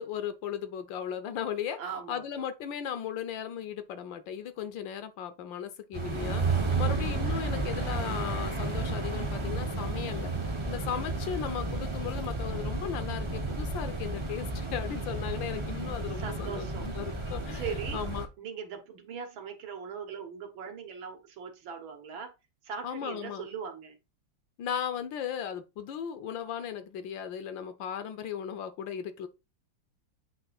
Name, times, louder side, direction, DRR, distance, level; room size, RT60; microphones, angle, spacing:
voice 1, 0.0-1.8 2.1-10.3 10.6-17.6 17.9-18.3 22.8-23.5 24.6-29.3, left 9 dB, 75° left, 1.4 m, -36 dB
voice 2, 1.8-2.3 6.7-7.0 16.1-16.9 17.5-18.0 18.4-22.3 22.6-24.0, right 6 dB, 75° right, 2.1 m, -40 dB
sound 1, 5.9-18.3, right 3 dB, 30° right, 0.5 m, -32 dB
8.0 x 3.4 x 4.0 m
omnidirectional pair, 2.2 m